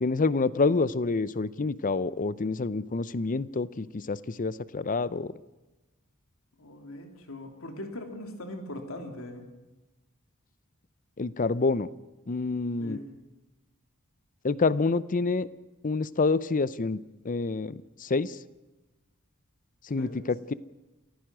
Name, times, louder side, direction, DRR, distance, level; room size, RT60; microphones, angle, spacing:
voice 1, 0.0-5.3 11.2-11.9 12.3-13.0 14.4-15.5 15.8-18.4 19.8-20.5, left 3 dB, 40° left, 18 dB, 0.6 m, -27 dB
voice 2, 6.6-9.5 12.8-13.1 20.0-20.3, left 1 dB, 70° left, 4 dB, 3.0 m, -40 dB
29.0 x 15.5 x 6.2 m, 1.1 s
head